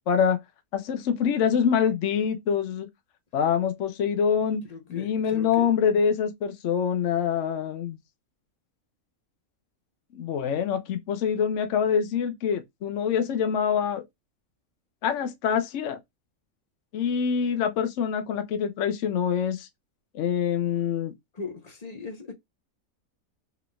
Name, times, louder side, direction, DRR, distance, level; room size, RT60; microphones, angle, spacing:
voice 1, 0.1-0.4 0.7-2.9 3.3-4.6 4.9-8.0 10.1-14.0 15.0-16.0 16.9-19.7 20.1-21.1, left 7 dB, 65° left, 0.9 m, -25 dB
voice 2, 4.7-5.7 21.3-22.3, left 4 dB, 35° left, 0.7 m, -38 dB
3.8 x 3.4 x 2.2 m
omnidirectional pair, 1.5 m